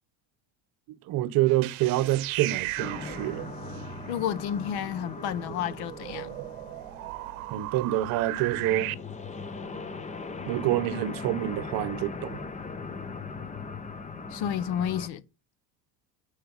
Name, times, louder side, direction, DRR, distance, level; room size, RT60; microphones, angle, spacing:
voice 1, 0.9-3.4 7.5-8.9 10.5-12.4, right 14 dB, 55° right, 0.8 m, -27 dB
sound 1, 1.5-8.9, right 19 dB, 85° right, 0.8 m, -37 dB
sound 2, 2.8-15.1, left 4 dB, 15° left, 0.7 m, -39 dB
voice 2, 4.1-6.4 14.3-15.2, left 9 dB, 65° left, 1.0 m, -31 dB
8.9 x 4.8 x 5.4 m
supercardioid pair, 125°, 42 cm